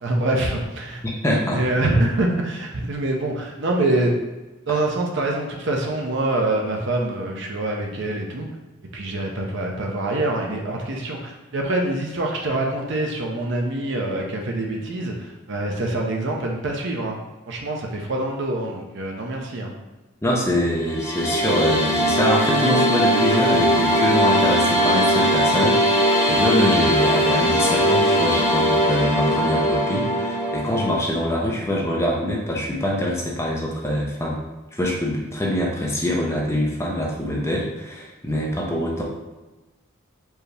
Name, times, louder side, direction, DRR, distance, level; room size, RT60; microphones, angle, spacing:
voice 1, 0.0-1.0 1.5-4.1 4.7-8.5 8.9-17.2 17.5-19.7, right 2 dB, 60° right, 0 dB, 0.7 m, -25 dB
voice 2, 1.0-1.6 4.7-4.8 20.2-34.4 34.7-39.0, left 1 dB, 15° left, -3 dB, 0.7 m, -24 dB
sound 1, 20.8-31.0, equal, 35° left, 1.4 m, -20 dB
4.6 x 2.8 x 3.4 m, 1.1 s
head